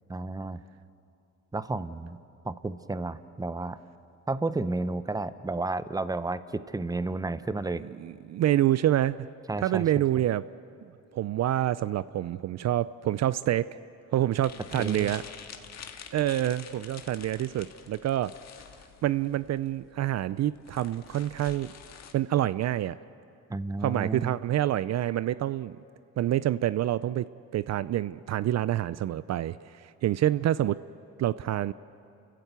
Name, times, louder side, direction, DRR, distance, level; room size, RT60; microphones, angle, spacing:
voice 1, 0.1-0.6 1.5-2.2 2.4-3.8 4.3-7.8 9.5-9.8 14.7-15.1 23.5-24.4, right 3 dB, 10° right, 13 dB, 0.8 m, -32 dB
voice 2, 8.0-9.2 9.6-10.4 11.1-13.8 14.1-15.2 16.1-18.3 19.0-21.7 22.1-23.0 23.8-25.8 26.2-30.8 31.2-31.7, right 13 dB, 60° right, 16 dB, 0.5 m, -27 dB
sound 1, 14.4-22.1, left 7 dB, 60° left, 1.8 m, -47 dB
29.5 x 15.0 x 8.2 m, 2.6 s
cardioid pair, 90°, 30 cm